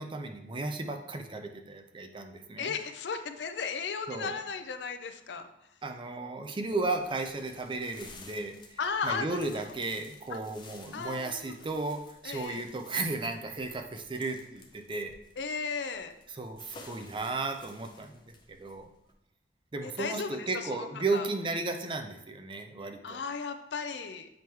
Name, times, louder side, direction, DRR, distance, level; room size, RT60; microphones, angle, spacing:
voice 1, 0.0-2.7 4.1-4.3 5.8-15.1 16.3-18.2 18.5-18.9 19.7-23.2, right 3 dB, 30° right, 5 dB, 0.5 m, -34 dB
voice 2, 2.6-5.5 8.8-9.5 10.3-10.4 10.9-11.6 12.2-12.6 15.4-16.1 19.8-21.3 23.0-24.3, left 5 dB, 80° left, 9 dB, 0.5 m, -35 dB
sound 1, 6.8-19.1, left 3 dB, 25° left, 0.6 m, -54 dB
7.2 x 3.1 x 4.6 m, 0.84 s
head